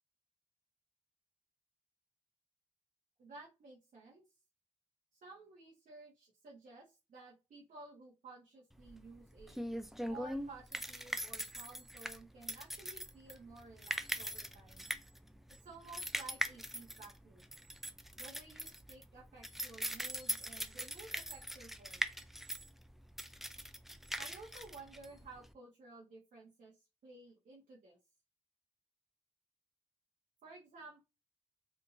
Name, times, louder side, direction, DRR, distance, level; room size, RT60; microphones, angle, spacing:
voice 1, 3.2-4.2 5.1-9.6 10.0-14.8 15.6-17.4 18.2-22.0 24.2-28.0 30.4-31.0, right 3 dB, 80° right, -4 dB, 1.2 m, -54 dB
sound 1, 8.8-25.5, equal, ahead, 0.4 m, -41 dB
3.6 x 2.6 x 2.6 m, 0.27 s
cardioid pair, 75°, 13 cm